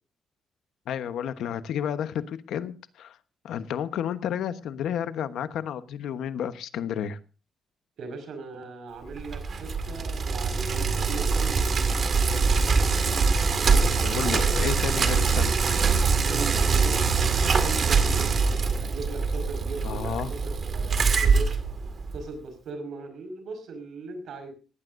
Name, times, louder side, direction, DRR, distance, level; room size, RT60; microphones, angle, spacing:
voice 1, 0.9-3.2 3.4-7.2 14.0-15.9 19.8-20.3, left 9 dB, 80° left, 11 dB, 1.1 m, -31 dB
voice 2, 8.0-12.0 13.6-14.9 15.3-15.4 16.2-18.5 18.8-21.5 22.1-24.5, right 3 dB, 65° right, 7 dB, 5.3 m, -39 dB
Bicycle, 9.1-22.3, right 5 dB, 40° right, 2.0 m, -24 dB
19.0 x 15.5 x 2.6 m, 0.34 s
cardioid pair, 150°, 0 cm